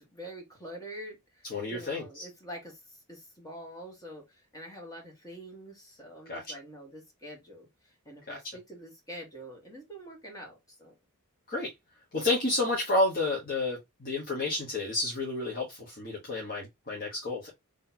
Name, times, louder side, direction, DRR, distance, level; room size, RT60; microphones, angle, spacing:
voice 1, 0.0-2.8 3.1-10.9, equal, 15° left, 1.6 m, -46 dB
voice 2, 1.5-2.3 6.3-6.4 8.3-8.6 11.5-11.7 12.1-17.5, left 2 dB, 40° left, 1.4 m, -30 dB
3.9 x 3.3 x 2.8 m
head